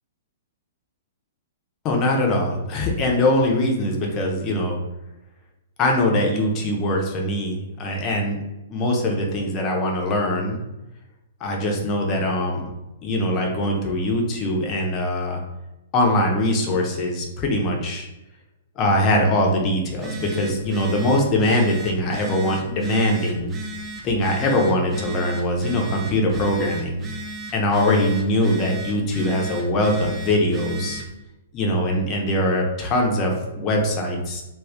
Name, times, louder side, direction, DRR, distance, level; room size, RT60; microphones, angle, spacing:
voice 1, 1.8-4.8 5.8-8.4 8.7-10.6 11.4-12.7 13.0-15.4 15.9-18.1 18.8-23.5 24.0-27.0 27.5-31.0 31.5-34.4, left 1 dB, 30° left, 0 dB, 0.6 m, -22 dB
Telephone, 19.9-31.2, right 1 dB, 15° right, 0.5 m, -36 dB
2.4 x 2.3 x 3.4 m, 0.97 s
figure-of-eight pair, 110°, 0 cm